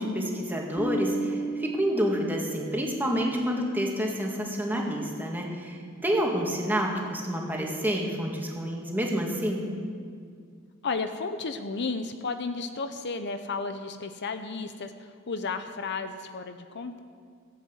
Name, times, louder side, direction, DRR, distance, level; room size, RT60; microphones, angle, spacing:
voice 1, 0.0-9.6, equal, 10° right, -1 dB, 1.8 m, -28 dB
Bass guitar, 0.8-3.2, right 2 dB, 30° left, 0.9 m, -33 dB
voice 2, 10.8-17.0, left 4 dB, 55° left, 8 dB, 0.7 m, -33 dB
15.5 x 8.2 x 7.9 m, 2.2 s
head